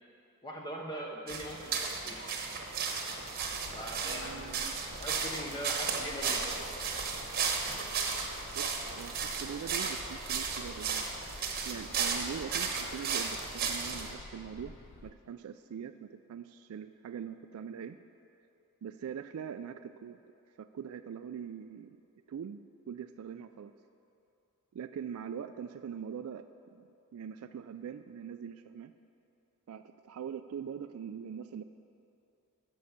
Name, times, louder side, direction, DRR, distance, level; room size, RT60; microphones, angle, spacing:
voice 1, 0.4-2.2 3.7-7.1, equal, 20° left, -1 dB, 0.8 m, -41 dB
sound 1, 1.3-14.1, right 5 dB, 45° right, 1.0 m, -35 dB
sound 2, 3.4-15.1, left 2 dB, 40° left, 0.4 m, -52 dB
voice 2, 4.0-4.8 8.5-11.1 11.6-14.7 15.0-18.0 18.8-20.2 20.6-22.0 22.3-23.7 24.7-26.5 26.7-26.8 27.1-28.9 29.7-31.6, right 7 dB, 75° right, 9 dB, 0.3 m, -42 dB
12.5 x 5.5 x 7.2 m, 2.7 s
head